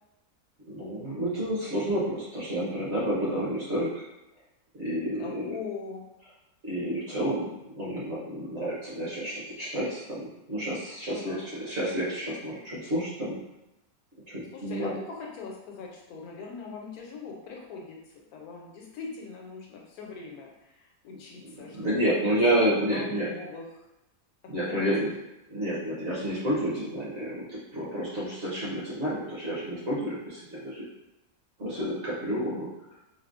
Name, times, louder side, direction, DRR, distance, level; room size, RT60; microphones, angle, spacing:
voice 1, 0.6-3.9 4.7-5.5 6.6-13.4 14.3-14.9 21.4-23.3 24.5-25.1 25.5-30.8 31.6-32.7, right 1 dB, 55° right, -7 dB, 1.1 m, -30 dB
voice 2, 5.1-6.0 11.1-11.6 14.5-18.0 18.3-22.0 22.6-23.6 24.4-25.1, left 4 dB, 80° left, -1 dB, 1.1 m, -41 dB
3.7 x 2.0 x 2.4 m, 0.93 s
omnidirectional pair, 1.6 m